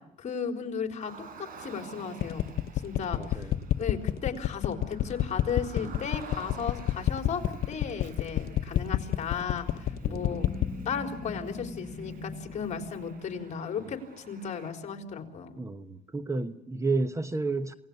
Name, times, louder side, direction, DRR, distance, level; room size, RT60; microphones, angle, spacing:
voice 1, 0.2-1.1 1.4-2.5 2.8-3.5 3.8-10.5 10.8-15.6, left 6 dB, 45° left, 4.1 m, -35 dB
Car, 1.0-14.7, right 5 dB, 55° right, 5.7 m, -50 dB
sound 1, 2.2-10.8, left 13 dB, 70° left, 0.9 m, -27 dB
voice 2, 3.1-3.7 5.8-6.0 7.5-7.6 10.0-10.3 15.6-17.7, right 3 dB, 15° right, 1.1 m, -32 dB
sound 2, 9.3-13.7, left 3 dB, 5° left, 5.8 m, -42 dB
28.0 x 19.0 x 6.8 m
cardioid pair, 110°, 17 cm